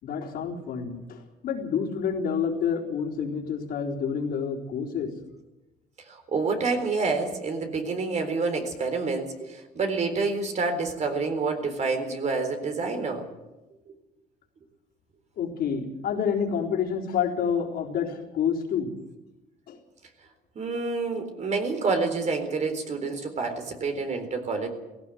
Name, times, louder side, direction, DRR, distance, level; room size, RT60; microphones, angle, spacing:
voice 1, 0.0-5.1 15.4-18.9 19.7-19.8, left 7 dB, 65° left, -1 dB, 4.2 m, -28 dB
voice 2, 6.1-13.3 20.6-24.7, right 4 dB, 45° right, 6 dB, 3.9 m, -28 dB
17.0 x 16.5 x 9.2 m, 1.0 s
cardioid pair, 110°, 17 cm